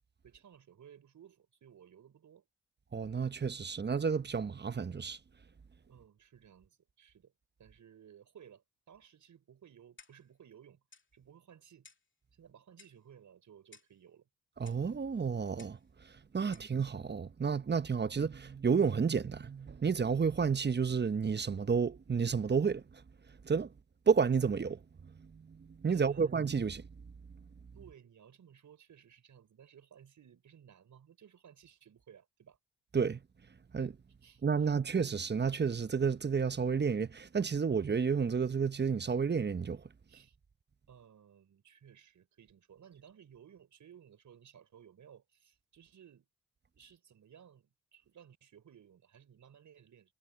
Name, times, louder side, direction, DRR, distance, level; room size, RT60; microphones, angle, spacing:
voice 1, 0.2-2.5 5.9-7.3 7.6-10.8 11.1-11.9 12.3-14.3 25.9-26.3 27.7-32.6 34.2-34.7 40.1-40.4 40.9-46.3 46.7-50.1, right 8 dB, 65° right, 5.6 m, -58 dB
voice 2, 2.9-5.2 14.6-15.8 16.3-22.8 23.4-23.7 24.1-24.8 25.2-26.8 32.9-33.2 33.7-34.0 34.4-39.8, right 6 dB, 30° right, 1.0 m, -31 dB
Clock, 10.0-10.3 10.9-11.1 11.8-12.1 12.8-13.1 13.7-14.0 14.7-14.9 15.6-15.9 16.5-16.8, left 4 dB, 35° left, 3.1 m, -59 dB
supercardioid pair, 50°, 32 cm